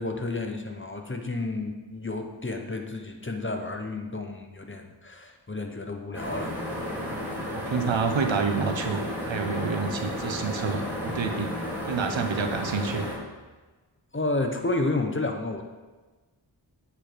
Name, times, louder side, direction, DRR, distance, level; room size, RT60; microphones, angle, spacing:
voice 1, 0.0-6.5 14.1-15.6, left 2 dB, 25° left, 4 dB, 0.9 m, -31 dB
sound 1, 6.1-13.2, left 1 dB, 5° right, 2.3 m, -33 dB
voice 2, 7.5-11.5 11.8-13.1, right 5 dB, 85° right, 6 dB, 0.8 m, -28 dB
8.4 x 4.5 x 5.0 m, 1.3 s
wide cardioid pair, 45°, 45 cm